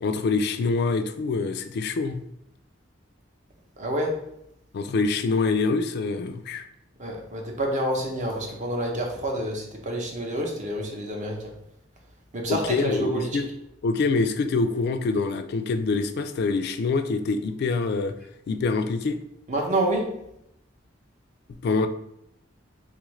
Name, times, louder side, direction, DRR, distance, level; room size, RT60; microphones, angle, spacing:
voice 1, 0.0-2.2 4.7-6.6 12.5-13.5 13.8-18.1 18.5-19.2 21.6-21.9, left 4 dB, 55° left, 8 dB, 0.3 m, -25 dB
voice 2, 3.8-4.2 7.0-11.5 12.3-13.5 19.5-20.2, right 1 dB, 40° right, 1 dB, 0.6 m, -28 dB
3.4 x 2.4 x 3.0 m, 0.78 s
head